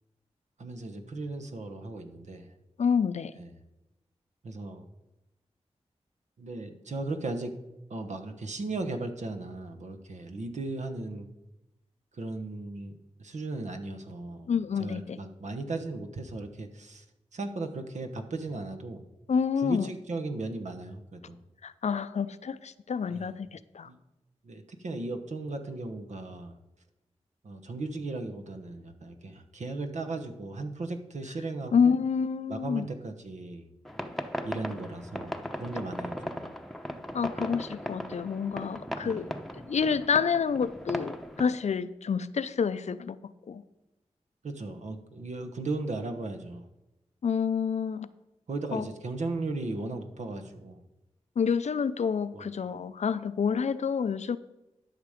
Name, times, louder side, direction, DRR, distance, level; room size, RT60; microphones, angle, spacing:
voice 1, 0.6-2.5 3.4-3.5 4.4-4.9 6.4-7.5 7.9-11.3 12.1-12.9 13.2-14.5 14.8-17.0 17.3-19.0 19.6-21.4 23.1-23.3 23.8-24.0 24.4-26.5 27.4-32.0 32.5-33.7 34.4-36.5 39.0-39.3 44.4-46.7 48.5-50.8 52.3-52.5, right 2 dB, 75° right, 6 dB, 1.1 m, -36 dB
voice 2, 2.8-3.3 14.5-15.2 19.3-19.9 21.6-23.9 31.7-32.9 37.1-39.3 39.7-43.2 43.5-43.6 47.2-48.1 48.7-48.9 51.4-54.4, left 6 dB, 70° left, 14 dB, 0.5 m, -28 dB
sound 1, 33.9-41.5, equal, ahead, 0.9 m, -38 dB
12.0 x 5.9 x 5.1 m, 0.96 s
cardioid pair, 55°, 12 cm